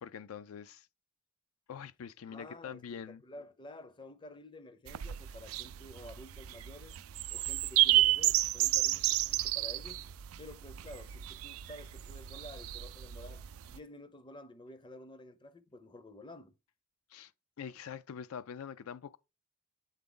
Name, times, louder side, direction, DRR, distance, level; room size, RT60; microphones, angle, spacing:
voice 1, 0.0-0.9 1.7-3.2 17.1-17.3 17.6-19.2, left 7 dB, 80° left, 0.4 m, -44 dB
voice 2, 2.3-7.0 7.3-10.1 10.4-16.6, left 1 dB, 20° left, 0.5 m, -51 dB
sound 1, 4.9-13.8, right 15 dB, 75° right, 0.4 m, -31 dB
8.0 x 3.8 x 3.8 m
head